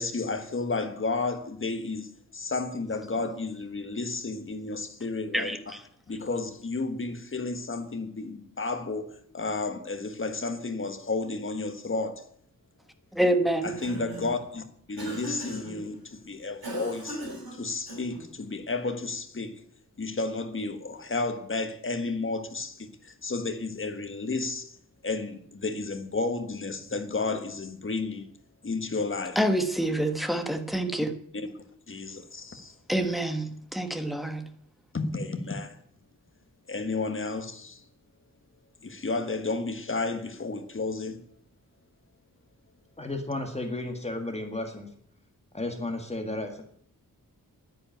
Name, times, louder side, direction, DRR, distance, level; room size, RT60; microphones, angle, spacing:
voice 1, 0.0-5.7 6.1-9.1 9.3-12.3 13.6-17.3 17.5-19.5 20.0-24.8 25.0-28.3 28.6-29.4 31.3-31.5 31.9-32.7 34.9-35.7 36.7-37.8 38.8-41.2, left 3 dB, 35° left, 1.5 m, -32 dB
voice 2, 13.1-13.7 29.3-31.1 32.9-34.5, right 1 dB, ahead, 1.2 m, -27 dB
Cough, 13.4-14.4 15.0-15.8 16.6-18.3, equal, 85° right, 7.5 m, -39 dB
voice 3, 43.0-44.9 45.5-46.6, left 2 dB, 20° left, 1.8 m, -33 dB
10.5 x 9.8 x 9.1 m
wide cardioid pair, 170°, 35 cm